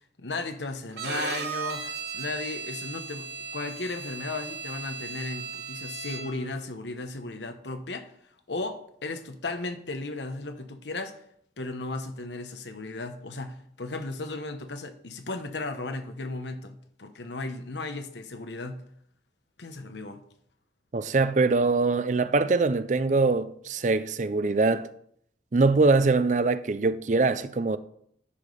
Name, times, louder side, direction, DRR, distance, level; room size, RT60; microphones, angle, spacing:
voice 1, 0.2-3.3 3.5-8.1 8.5-11.2 11.6-18.8 19.6-20.2, left 3 dB, 85° left, 1.1 m, -35 dB
Bowed string instrument, 0.9-6.5, right 5 dB, 75° right, 1.2 m, -36 dB
voice 2, 20.9-24.9 25.5-27.8, right 3 dB, 45° right, 0.5 m, -23 dB
9.9 x 5.1 x 5.4 m
head